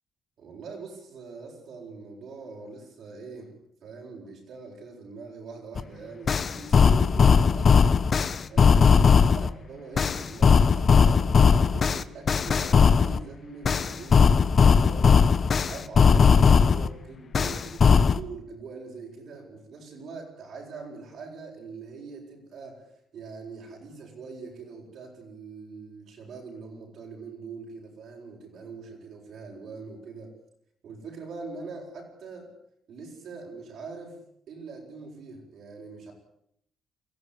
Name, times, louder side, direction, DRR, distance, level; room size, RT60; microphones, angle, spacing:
voice 1, 0.4-15.2 15.6-30.3 30.8-32.5 32.9-34.2 34.5-36.1, right 4 dB, 65° right, -2 dB, 7.9 m, -43 dB
sound 1, 5.8-5.9 6.3-9.5 10.0-13.2 13.6-16.9 17.3-18.2, left 6 dB, 45° left, 1.2 m, -19 dB
23.0 x 15.0 x 9.8 m, 0.74 s
cardioid pair, 90°, 0 cm